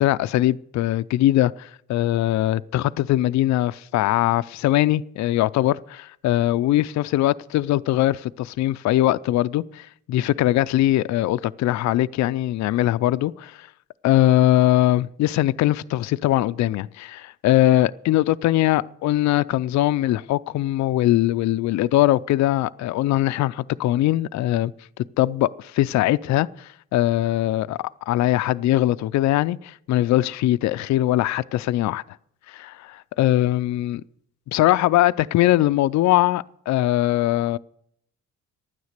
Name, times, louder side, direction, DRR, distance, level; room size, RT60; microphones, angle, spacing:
voice 1, 0.0-13.7 14.0-24.7 25.2-27.8 28.1-32.0 32.5-34.0 34.5-37.6, left 14 dB, 65° left, 0.4 m, -21 dB
12.0 x 9.6 x 6.6 m
cardioid pair, 90°, 30 cm